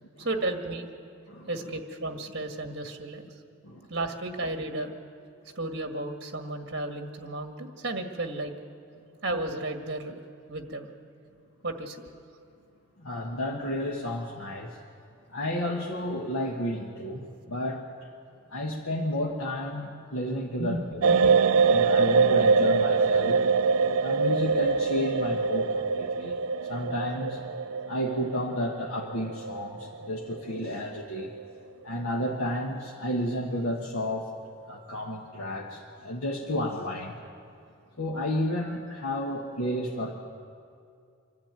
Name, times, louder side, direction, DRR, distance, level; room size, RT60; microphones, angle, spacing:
voice 1, 0.2-0.9 1.5-3.2 3.9-4.9 5.5-8.5 9.2-10.2 10.5-10.9 11.6-12.1 20.6-21.3, right 2 dB, 50° right, 5 dB, 1.7 m, -33 dB
voice 2, 13.0-14.8 15.3-17.8 18.5-21.3 21.7-23.4 24.0-26.4 26.7-27.4 27.9-31.3 31.8-34.3 34.7-37.2 38.0-40.2, left 1 dB, 80° left, -1 dB, 1.5 m, -31 dB
sound 1, 21.0-31.0 31.2-31.4, right 5 dB, 80° right, 0.4 m, -24 dB
26.0 x 12.0 x 9.0 m, 2.4 s
head